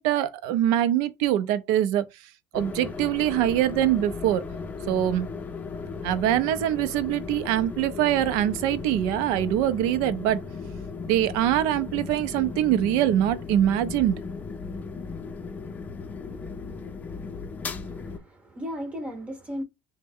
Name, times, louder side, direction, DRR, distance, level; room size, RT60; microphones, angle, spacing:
voice 1, 0.0-2.0 2.5-4.4 4.9-5.3 6.0-10.4 11.1-14.2, right 12 dB, 80° right, 0.5 m, -23 dB
sound 1, 2.5-18.2, left 4 dB, 25° left, 0.5 m, -36 dB
voice 2, 17.8-19.6, equal, 20° right, 0.7 m, -36 dB
3.3 x 2.1 x 3.5 m
supercardioid pair, 110°, 6 cm